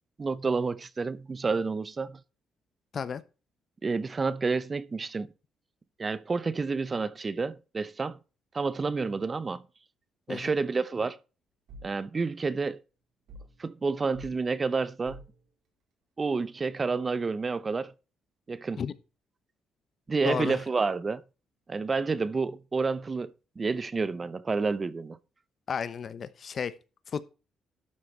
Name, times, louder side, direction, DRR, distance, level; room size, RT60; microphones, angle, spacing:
voice 1, 0.2-2.2 3.8-5.3 6.0-8.2 8.5-9.6 10.3-11.2 11.8-12.8 13.6-15.2 16.2-17.9 18.5-18.8 20.1-21.2 21.7-25.2, right 4 dB, 30° right, 0.7 m, -29 dB
sound 1, 11.7-12.0 13.3-13.6 14.1-14.4 15.0-15.4, right 1 dB, 80° right, 4.3 m, -47 dB
voice 2, 20.2-20.6 25.7-26.7 27.1-27.2, left 6 dB, 50° left, 1.0 m, -32 dB
12.0 x 6.5 x 4.4 m
cardioid pair, 90°, 0 cm